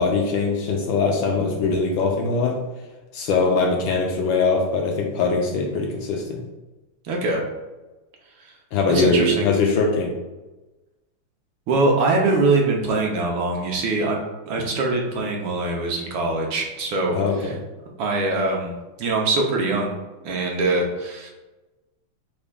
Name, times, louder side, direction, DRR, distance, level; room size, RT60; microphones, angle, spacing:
voice 1, 0.0-2.6 3.1-6.4 8.7-10.1 17.1-17.6, left 3 dB, 75° left, 1 dB, 1.2 m, -21 dB
voice 2, 7.0-7.4 8.4-8.5 8.9-9.5 11.7-17.1 17.4-17.5 18.0-19.9 20.2-21.3, right 3 dB, 75° right, 0 dB, 1.4 m, -23 dB
5.9 x 3.4 x 2.2 m, 1.1 s
omnidirectional pair, 2.4 m